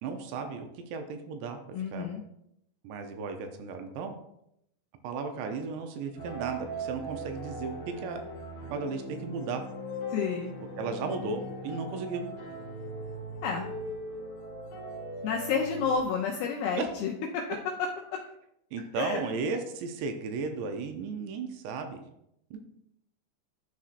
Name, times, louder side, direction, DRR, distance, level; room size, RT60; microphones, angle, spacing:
voice 1, 0.0-1.6 1.9-2.1 2.8-4.1 5.0-8.2 8.7-9.6 10.8-12.2 16.8-16.9 18.7-22.0 22.5-22.6, right 4 dB, 80° right, 6 dB, 2.7 m, -35 dB
voice 2, 1.7-2.2 10.1-10.5 13.4-13.7 15.2-17.5 17.8-17.9 18.9-19.2, left 6 dB, 80° left, 0 dB, 2.2 m, -30 dB
sound 1, 6.2-16.0, right 1 dB, 50° left, 2.8 m, -39 dB
12.0 x 4.2 x 2.5 m, 0.77 s
omnidirectional pair, 5.1 m